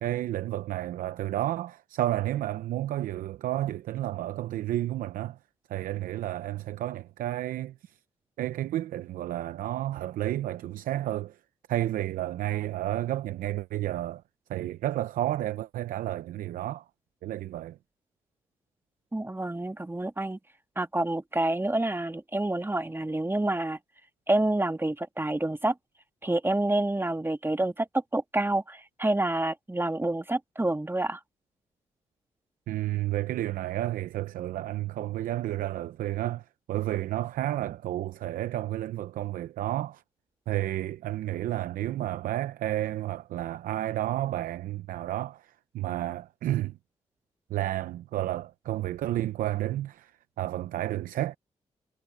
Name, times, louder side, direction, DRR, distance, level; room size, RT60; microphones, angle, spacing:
voice 1, 0.0-5.4 5.7-8.0 8.4-11.4 11.7-14.2 14.5-16.8 17.2-17.8 32.7-40.0 40.5-46.8 47.5-51.4, right 14 dB, 85° right, 0.7 m, -31 dB
voice 2, 19.1-20.4 20.8-23.8 24.3-25.8 26.2-27.9 28.1-31.2, right 2 dB, 15° right, 1.6 m, -28 dB
supercardioid pair, 45°, 14 cm